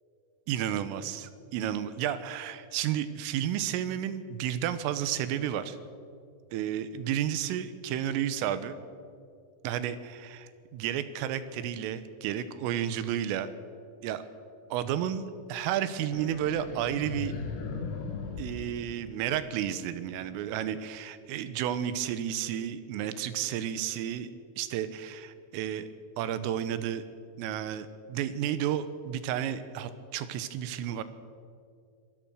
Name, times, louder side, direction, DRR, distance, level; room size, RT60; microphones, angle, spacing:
voice 1, 0.5-5.8 6.5-8.8 9.6-13.5 14.0-14.3 14.7-17.3 18.4-24.3 24.6-25.9 26.2-27.0 27.4-31.0, right 10 dB, 85° right, 13 dB, 3.7 m, -32 dB
sound 1, 16.1-19.6, left 5 dB, 85° left, 4.8 m, -38 dB
24.0 x 18.5 x 6.4 m, 2.4 s
omnidirectional pair, 5.8 m